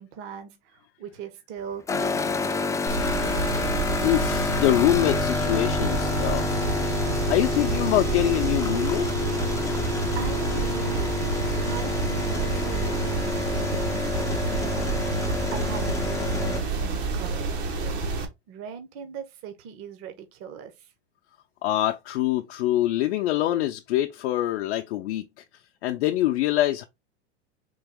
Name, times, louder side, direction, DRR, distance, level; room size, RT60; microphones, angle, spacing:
voice 1, 0.0-2.8 9.5-9.8 10.1-11.1 11.6-14.1 14.4-14.9 15.2-17.9 18.5-20.9, right 7 dB, 40° right, 0.8 m, -40 dB
sound 1, 1.9-16.6, left 3 dB, 10° left, 0.4 m, -28 dB
sound 2, 2.9-18.2, right 3 dB, 75° right, 1.3 m, -29 dB
voice 2, 4.0-6.7 7.3-9.1 21.6-25.4 25.8-26.9, left 14 dB, 70° left, 0.5 m, -24 dB
3.9 x 2.5 x 3.5 m
hypercardioid pair, 110°, 33 cm